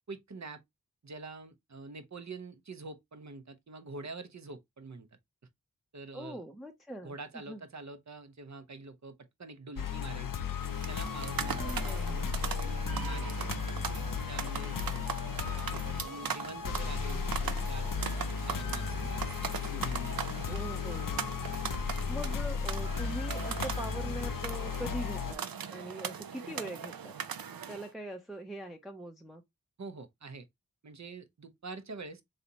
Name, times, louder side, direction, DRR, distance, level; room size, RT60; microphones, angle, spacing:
voice 1, 0.1-0.6 1.0-5.1 5.9-6.4 7.0-10.3 10.9-13.8 14.3-15.0 15.5-20.1 29.8-30.5 30.8-32.2, right 3 dB, 50° right, 0.8 m, -46 dB
voice 2, 6.1-7.1 7.5-7.6 11.6-12.2 20.5-21.2 22.1-25.4 25.7-27.1 27.7-29.4, right 1 dB, ahead, 0.6 m, -42 dB
sound 1, 9.8-25.3, left 6 dB, 70° left, 0.5 m, -35 dB
sound 2, 10.6-27.9, right 7 dB, 90° right, 0.6 m, -40 dB
4.0 x 3.2 x 2.7 m
wide cardioid pair, 70°, 34 cm